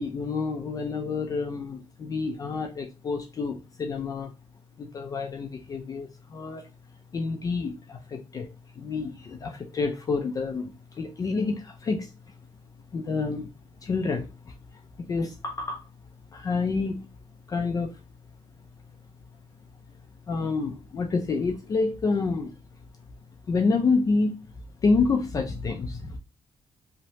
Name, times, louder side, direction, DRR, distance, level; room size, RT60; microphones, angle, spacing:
voice 1, 0.0-4.3 4.8-6.6 7.1-8.5 8.8-12.1 12.9-13.5 13.8-14.5 15.1-15.9 16.3-17.1 17.5-18.0 20.3-22.5 23.5-24.3 24.8-26.2, left 4 dB, 35° left, 0.3 m, -28 dB
3.0 x 2.0 x 2.7 m
cardioid pair, 125°, 11 cm